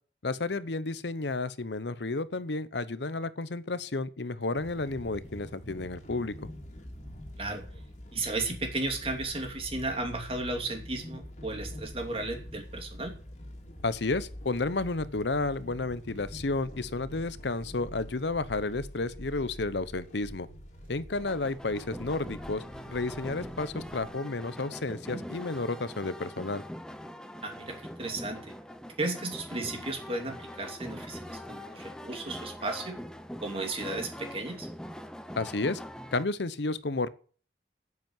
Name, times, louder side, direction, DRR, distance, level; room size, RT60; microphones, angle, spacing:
voice 1, 0.2-6.3 13.8-20.5 20.9-22.6 22.9-26.6 35.4-35.8 36.1-37.1, left 3 dB, 75° left, 0.9 m, -31 dB
sound 1, 4.5-24.1, equal, 40° left, 2.9 m, -45 dB
voice 2, 7.4-7.7 8.1-13.1 27.4-28.5 29.0-33.0 33.4-34.7, right 2 dB, 30° right, 2.7 m, -34 dB
sound 2, 20.8-29.3 29.7-29.8, right 1 dB, 90° right, 4.0 m, -56 dB
sound 3, 21.2-36.3, equal, 5° left, 0.7 m, -43 dB
9.4 x 8.3 x 9.2 m
head